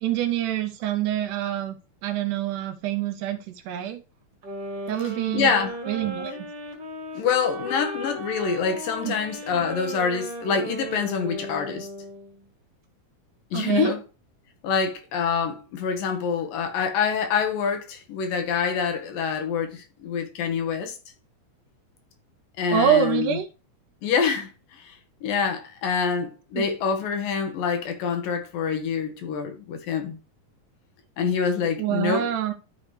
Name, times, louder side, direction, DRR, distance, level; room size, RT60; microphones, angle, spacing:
voice 1, 0.0-1.8 2.0-4.0 4.9-5.6 5.9-6.5 9.0-9.2 13.5-13.9 22.7-23.5 26.5-26.7 31.8-32.5, right 11 dB, 75° right, 2.0 m, -26 dB
sound 1, 4.4-12.4, equal, 45° right, 2.2 m, -36 dB
voice 2, 5.3-5.8 7.1-11.9 13.5-14.0 14.6-21.0 22.6-23.4 24.0-30.2 31.2-32.3, left 6 dB, 80° left, 3.0 m, -26 dB
11.5 x 4.8 x 3.2 m
omnidirectional pair, 4.0 m